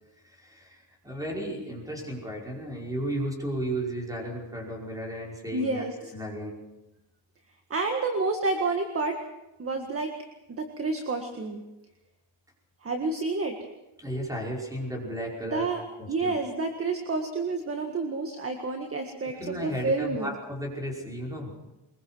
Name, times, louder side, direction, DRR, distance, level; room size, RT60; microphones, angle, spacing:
voice 1, 0.2-6.6 14.0-15.7 16.0-16.4 19.2-21.7, right 1 dB, 5° right, -1 dB, 5.4 m, -34 dB
voice 2, 5.5-5.9 7.7-9.2 9.6-10.1 10.6-11.6 12.8-13.6 15.5-15.8 16.1-20.3, right 3 dB, 30° right, 5 dB, 1.8 m, -29 dB
23.0 x 22.0 x 6.3 m, 0.98 s
cardioid pair, 165°, 47 cm